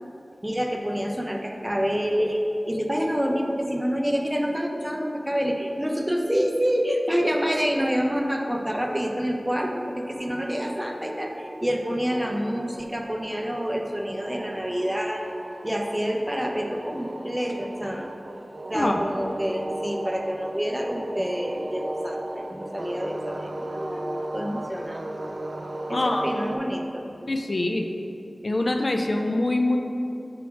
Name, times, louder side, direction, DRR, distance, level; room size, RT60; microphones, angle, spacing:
voice 1, 0.4-15.3 15.6-18.1 18.7-25.1 25.9-27.1, equal, 10° right, 2 dB, 0.5 m, -27 dB
sound 1, 10.1-26.6, right 1 dB, 60° right, 0.4 m, -36 dB
voice 2, 25.9-26.3 27.3-27.9 28.4-29.8, left 2 dB, 55° left, 3 dB, 0.4 m, -24 dB
4.7 x 4.2 x 5.7 m, 2.9 s
wide cardioid pair, 60°, 0 cm